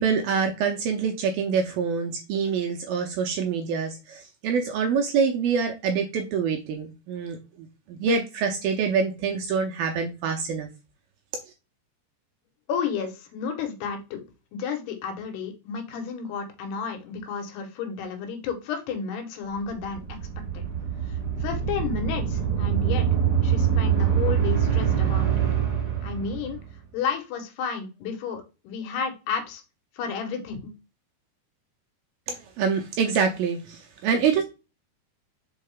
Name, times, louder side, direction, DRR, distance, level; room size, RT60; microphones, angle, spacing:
voice 1, 0.0-10.7 32.3-34.4, right 6 dB, 80° right, 2.3 m, -26 dB
voice 2, 12.7-14.2 14.5-20.2 20.5-20.6 21.1-25.3 26.0-26.6 26.9-29.6 29.9-30.7, left 6 dB, 80° left, 3.1 m, -32 dB
sound 1, 19.7-26.7, right 8 dB, 35° right, 1.9 m, -24 dB
5.5 x 4.8 x 3.5 m
omnidirectional pair, 4.9 m